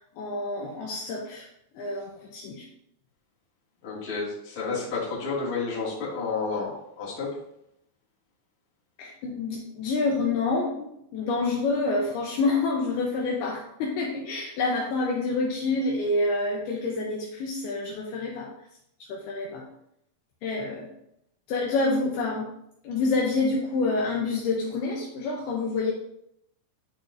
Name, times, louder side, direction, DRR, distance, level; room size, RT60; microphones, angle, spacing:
voice 1, 0.0-1.5 1.7-2.6 9.0-18.5 19.1-19.6 20.4-20.9 21.5-22.5 22.8-25.9, left 3 dB, 75° left, -2 dB, 2.6 m, -27 dB
voice 2, 3.8-7.4, left 4 dB, 40° left, -6 dB, 2.3 m, -31 dB
10.5 x 4.5 x 2.5 m, 0.76 s
omnidirectional pair, 4.9 m